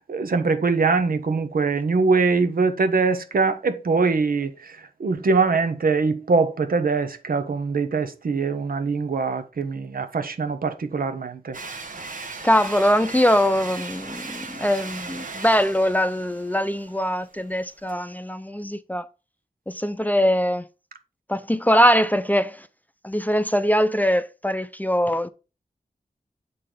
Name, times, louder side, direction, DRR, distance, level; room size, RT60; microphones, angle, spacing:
voice 1, 0.1-11.6, right 4 dB, 90° right, 0.9 m, -23 dB
sound 1, 11.5-17.9, right 3 dB, 65° right, 1.2 m, -37 dB
voice 2, 12.4-19.1 19.7-20.7 21.3-22.7 23.0-25.3, equal, 10° left, 0.5 m, -22 dB
7.6 x 4.1 x 4.9 m
wide cardioid pair, 55°, 14 cm